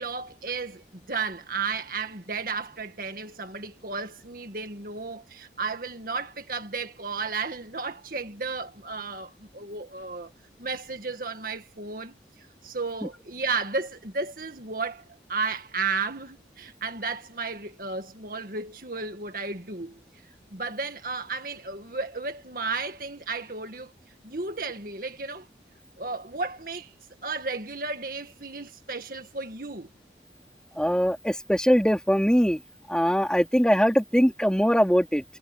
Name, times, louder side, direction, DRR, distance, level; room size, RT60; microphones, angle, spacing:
voice 1, 0.0-10.3 10.6-12.1 12.6-15.0 15.3-20.0 20.5-23.9 24.2-25.5 26.0-26.9 27.2-29.9, right 4 dB, 50° right, 2.0 m, -33 dB
voice 2, 30.8-32.6 32.9-35.2, equal, 5° left, 3.6 m, -22 dB
head